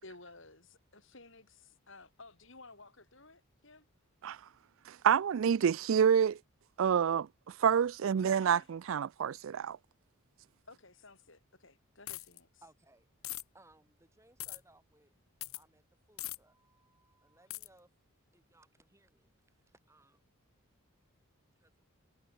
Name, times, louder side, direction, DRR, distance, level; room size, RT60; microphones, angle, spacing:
voice 1, 0.0-3.9 8.4-8.7 10.7-12.5, left 3 dB, 60° left, 5.4 m, -55 dB
voice 2, 4.9-6.4 6.8-9.8, right 7 dB, 65° right, 0.3 m, -28 dB
sound 1, 12.1-12.4 13.2-13.4 14.4-14.6 15.4-15.6 16.2-16.4 17.5-17.7, left 17 dB, 75° left, 1.6 m, -40 dB
voice 3, 12.6-13.1 13.5-15.1 15.5-17.9 18.3-20.3 20.8-20.9 21.5-21.9, right 2 dB, 15° right, 6.8 m, -65 dB
head